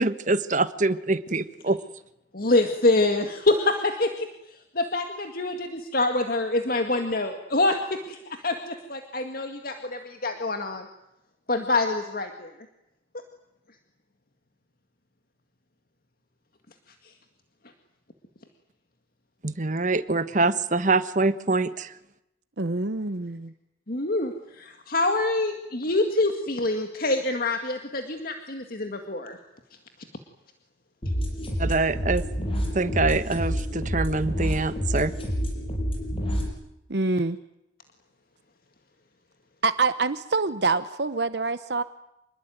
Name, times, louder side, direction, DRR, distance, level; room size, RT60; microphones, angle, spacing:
voice 1, 0.0-1.8 19.4-21.9 31.6-32.2 32.7-35.1, right 3 dB, 45° right, 13 dB, 1.3 m, -24 dB
voice 2, 2.3-10.9 11.5-12.5 23.9-29.4, left 2 dB, 55° left, 5 dB, 2.1 m, -26 dB
voice 3, 22.6-23.5 36.9-37.4 39.6-41.8, right 3 dB, 65° right, 12 dB, 0.9 m, -26 dB
sound 1, 31.0-36.5, equal, 30° left, 6.7 m, -28 dB
27.0 x 21.0 x 9.4 m, 0.86 s
head